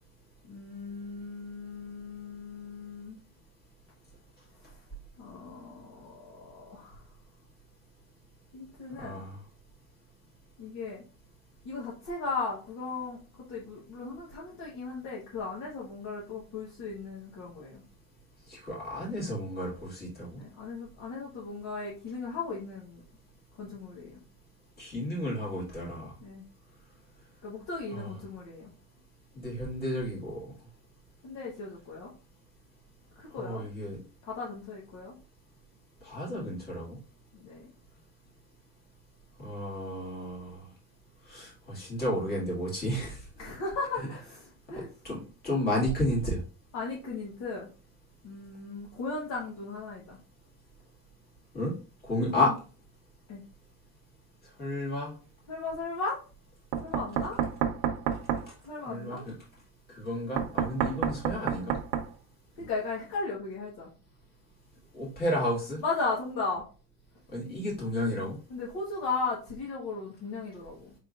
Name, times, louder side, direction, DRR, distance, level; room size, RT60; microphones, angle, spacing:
voice 1, 0.4-3.2 4.6-4.8 5.2-7.0 8.5-9.2 10.6-11.0 11.6-17.8 20.4-23.0 23.6-24.2 26.2-26.5 27.4-28.7 31.2-32.1 33.2-33.6 34.2-35.2 37.3-37.7 43.4-44.9 46.7-47.7 48.2-50.2 52.3-52.5 53.3-53.4 55.5-56.2 56.8-57.4 58.6-59.2 62.5-63.9 65.8-66.6 68.5-70.9, left 4 dB, 40° left, -4 dB, 1.2 m, -36 dB
voice 2, 9.0-9.4 18.5-20.4 24.8-26.1 27.9-28.1 29.3-30.5 33.3-34.0 36.0-37.0 39.4-40.6 41.3-43.2 45.0-46.4 51.5-51.8 52.0-52.5 54.6-55.1 58.8-59.3 59.9-61.8 64.9-65.8 67.3-68.4, left 1 dB, 25° left, -4 dB, 2.1 m, -32 dB
Knock, 56.7-58.4 60.4-62.1, right 9 dB, 80° right, 0.9 m, -29 dB
5.1 x 3.7 x 2.4 m, 0.35 s
cardioid pair, 175°, 41 cm